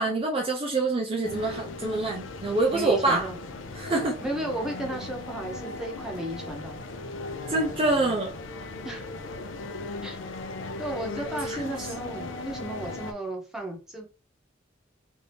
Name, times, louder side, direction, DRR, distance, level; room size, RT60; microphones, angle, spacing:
voice 1, 0.0-3.3 3.8-4.2 7.5-8.3 11.2-11.6, right 2 dB, 30° right, 0.5 m, -26 dB
sound 1, 1.2-13.1, left 2 dB, 80° left, 0.5 m, -37 dB
voice 2, 2.7-3.4 4.2-6.8 8.8-9.0 10.0-10.2 10.8-14.1, right 1 dB, 5° right, 0.8 m, -34 dB
2.7 x 2.5 x 3.4 m
head